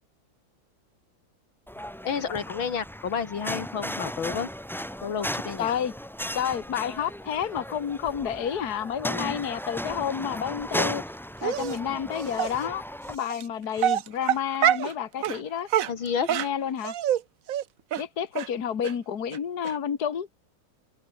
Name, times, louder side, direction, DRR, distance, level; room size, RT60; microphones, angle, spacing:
sound 1, 1.7-13.2, equal, 5° left, 0.3 m, -35 dB
voice 1, 2.0-4.5 5.0-5.7 15.9-16.3, left 7 dB, 75° left, 2.8 m, -30 dB
voice 2, 5.6-5.9 6.4-11.0 11.4-15.7 16.3-16.9 18.0-20.3, left 8 dB, 50° left, 2.1 m, -30 dB
Dog, 11.4-11.8 12.4-12.5 13.3-13.4 13.8-14.9 15.2-15.4 15.7-17.2 17.5-17.6 17.9-18.0 18.4-18.5 18.8-18.9 19.3-19.4 19.6-19.7, right 11 dB, 60° right, 0.9 m, -25 dB
open air
omnidirectional pair, 2.2 m